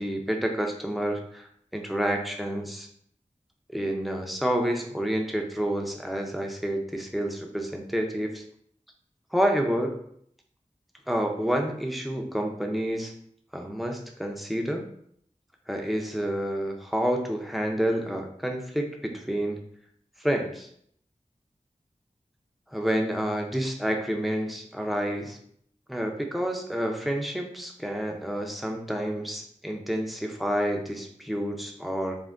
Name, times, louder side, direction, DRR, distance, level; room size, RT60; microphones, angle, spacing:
voice 1, 0.0-2.9 3.7-8.4 9.3-10.0 11.1-13.1 13.5-14.8 15.7-19.6 20.2-20.7 22.7-25.4 25.9-32.2, equal, ahead, 2 dB, 0.5 m, -29 dB
3.3 x 2.1 x 2.4 m, 0.65 s
wide cardioid pair, 60°, 13 cm